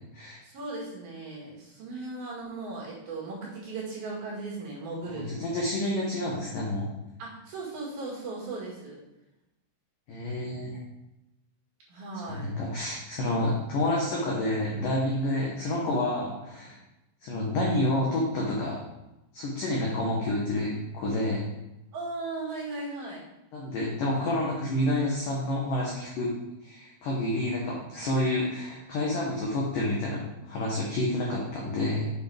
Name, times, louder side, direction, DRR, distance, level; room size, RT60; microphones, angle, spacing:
voice 1, 0.4-5.3 7.2-9.0 11.9-12.5 21.9-23.2, right 3 dB, 55° right, -5 dB, 3.4 m, -37 dB
voice 2, 5.0-6.9 10.1-10.8 12.3-16.8 17.2-18.8 19.3-21.4 23.5-26.3 26.6-32.2, left 1 dB, 80° left, -3 dB, 1.9 m, -29 dB
7.7 x 7.0 x 3.5 m, 0.94 s
omnidirectional pair, 5.7 m